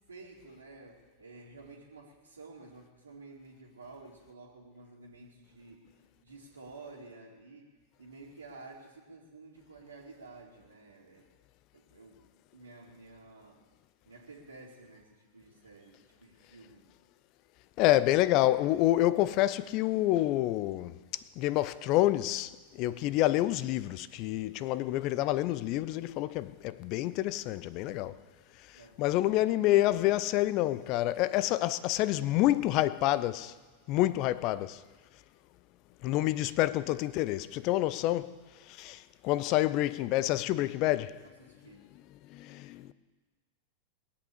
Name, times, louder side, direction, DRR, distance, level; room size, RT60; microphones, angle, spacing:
voice 1, 0.1-5.8 6.2-7.7 8.0-11.3 11.7-12.2 12.5-13.6 14.0-16.8 28.7-29.0 41.2-41.9, right 3 dB, 75° right, 2.3 m, -51 dB
voice 2, 17.8-28.2 29.0-33.5 33.9-34.8 36.0-38.3 38.7-41.2 42.3-42.9, left 15 dB, 40° left, 0.6 m, -28 dB
21.0 x 8.5 x 6.8 m
figure-of-eight pair, 90°, 0 cm